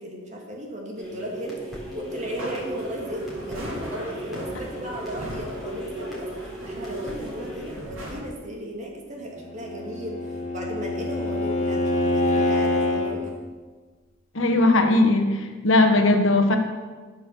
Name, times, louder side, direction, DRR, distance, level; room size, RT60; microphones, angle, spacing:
voice 1, 0.0-13.3, equal, 35° right, -1 dB, 2.4 m, -35 dB
sound 1, 1.0-8.9, right 1 dB, ahead, 3.6 m, -38 dB
sound 2, 2.2-8.2, equal, 60° right, 3.5 m, -38 dB
Bowed string instrument, 9.5-13.2, left 1 dB, 35° left, 1.8 m, -25 dB
voice 2, 14.3-16.6, left 2 dB, 60° left, 5 dB, 1.4 m, -19 dB
14.0 x 6.6 x 6.9 m, 1.4 s
head